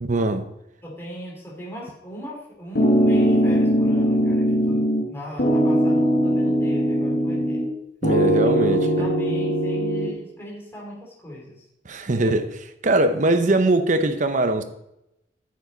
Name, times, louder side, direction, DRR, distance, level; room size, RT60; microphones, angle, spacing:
voice 1, 0.0-0.5 8.0-9.1 11.9-14.6, right 2 dB, 45° right, 0.8 m, -22 dB
voice 2, 0.8-7.6 8.4-11.6, equal, 15° left, 3.0 m, -38 dB
sound 1, 2.8-5.1 5.4-7.7 8.0-10.1, equal, 60° left, 1.3 m, -20 dB
9.3 x 7.2 x 4.0 m
head